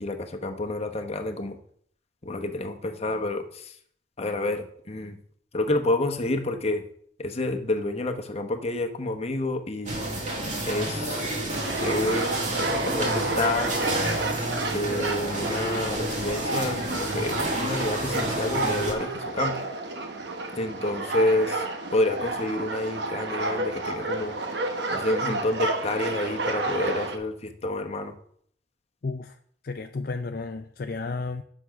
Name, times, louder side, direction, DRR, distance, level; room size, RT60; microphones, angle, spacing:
voice 1, 0.0-1.6 2.2-3.8 4.2-5.2 5.5-6.8 7.2-10.0 10.7-11.3 11.8-13.7 14.7-19.6 20.5-21.6 21.9-24.3 24.9-28.1, left 2 dB, 35° left, 1.0 m, -29 dB
sound 1, 9.9-18.9, right 1 dB, 40° right, 2.2 m, -30 dB
sound 2, 11.5-27.2, right 2 dB, 70° right, 1.2 m, -30 dB
voice 2, 29.0-29.4 29.6-31.4, left 3 dB, 55° left, 0.5 m, -32 dB
8.6 x 6.3 x 5.8 m
head